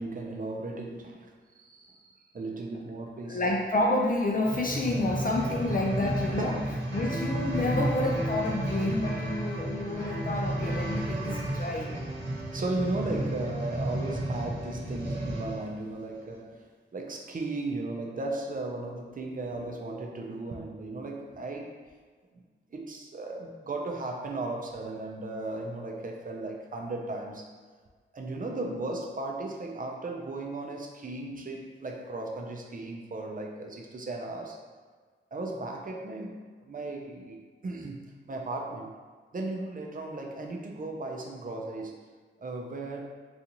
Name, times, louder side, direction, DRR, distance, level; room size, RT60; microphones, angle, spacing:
voice 1, 0.0-3.5 6.4-7.0 12.5-21.8 22.3-22.4 22.7-27.5 28.1-34.6 35.3-38.0 38.3-38.9 39.3-42.0 42.4-43.2, right 2 dB, 45° right, 1 dB, 0.5 m, -36 dB
voice 2, 3.3-6.5 6.9-11.9, left 2 dB, 45° left, 0 dB, 0.4 m, -29 dB
sound 1, 4.4-15.7 16.3-16.4, right 1 dB, 60° right, 1.0 m, -33 dB
sound 2, 5.3-15.4, equal, 15° left, 1.0 m, -41 dB
3.9 x 2.4 x 2.8 m, 1.5 s
wide cardioid pair, 105°, 20 cm